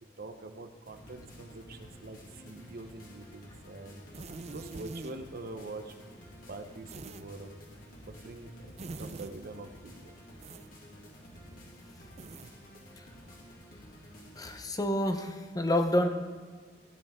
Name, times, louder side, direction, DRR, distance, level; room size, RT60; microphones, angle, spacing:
voice 1, 0.2-4.0 4.5-6.0 6.5-7.5 8.0-10.1, right 2 dB, 55° right, 7 dB, 0.8 m, -45 dB
sound 1, 0.9-14.6, equal, 50° left, 2.2 m, -51 dB
sound 2, 4.1-5.1 6.9-7.2 8.8-9.3 10.4-10.7 12.2-12.5, right 3 dB, 40° right, 0.4 m, -43 dB
voice 2, 14.4-16.1, left 1 dB, 20° left, 6 dB, 0.7 m, -28 dB
15.0 x 9.8 x 3.5 m, 1.5 s
head